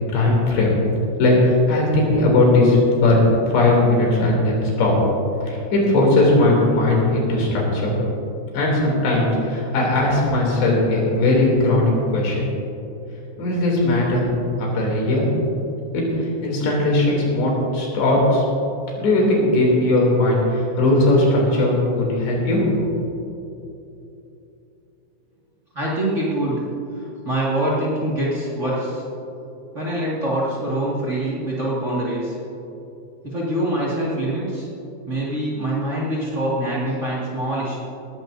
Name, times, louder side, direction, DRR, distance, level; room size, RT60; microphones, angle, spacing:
voice 1, 0.1-0.8 1.2-3.3 3.5-4.9 5.4-7.9 8.5-12.4 13.4-14.3 14.6-15.3 15.9-16.0 16.4-18.4 19.0-22.6, left 2 dB, 70° left, -2 dB, 5.2 m, -18 dB
voice 2, 25.7-26.6 27.0-29.0 29.7-32.4 33.2-34.7 35.1-37.8, right 1 dB, 65° right, -7 dB, 0.7 m, -24 dB
19.0 x 15.5 x 2.7 m, 2.9 s
omnidirectional pair, 5.2 m